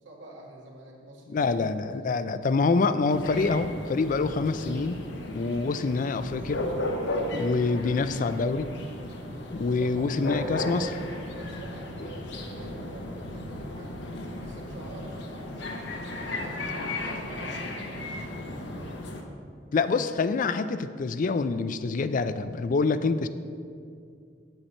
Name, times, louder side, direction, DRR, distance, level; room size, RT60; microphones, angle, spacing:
voice 1, 0.0-1.5 2.0-2.4 9.8-10.9 11.4-14.0 14.4-18.9, right 2 dB, 80° right, -2 dB, 1.8 m, -47 dB
voice 2, 1.3-5.0 5.3-6.6 7.3-8.7 9.5-10.9 19.7-23.3, left 4 dB, 45° left, 12 dB, 0.4 m, -26 dB
sound 1, 3.1-19.2, left 1 dB, 65° left, 0.9 m, -35 dB
8.5 x 7.9 x 4.3 m, 2.3 s
head